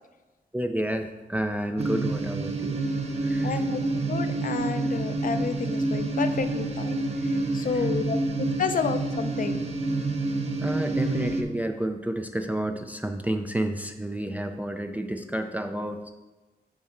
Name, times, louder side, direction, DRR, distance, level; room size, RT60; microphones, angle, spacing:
voice 1, 0.5-2.8 3.2-3.6 7.7-7.9 10.6-16.1, right 1 dB, 10° right, 5 dB, 0.4 m, -30 dB
sound 1, 1.8-11.4, right 2 dB, 40° right, 0.7 m, -28 dB
voice 2, 3.4-9.7, left 6 dB, 55° left, 9 dB, 0.5 m, -31 dB
7.3 x 4.2 x 4.4 m, 1.1 s
wide cardioid pair, 120°, 17 cm